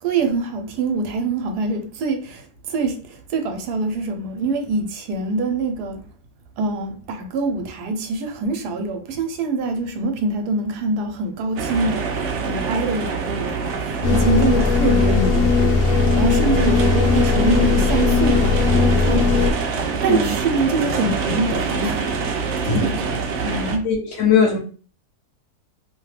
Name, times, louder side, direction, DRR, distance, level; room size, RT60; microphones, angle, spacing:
voice 1, 0.0-6.0 6.6-19.6 20.0-23.0 23.4-23.9, right 3 dB, 85° right, 1.2 m, -25 dB
sound 1, 11.6-23.8, right 5 dB, 65° right, 0.7 m, -25 dB
sound 2, 14.0-19.5, left 4 dB, 85° left, 1.1 m, -18 dB
voice 2, 22.6-23.0 23.8-24.6, left 6 dB, 60° left, 0.9 m, -19 dB
2.8 x 2.2 x 3.1 m
omnidirectional pair, 1.7 m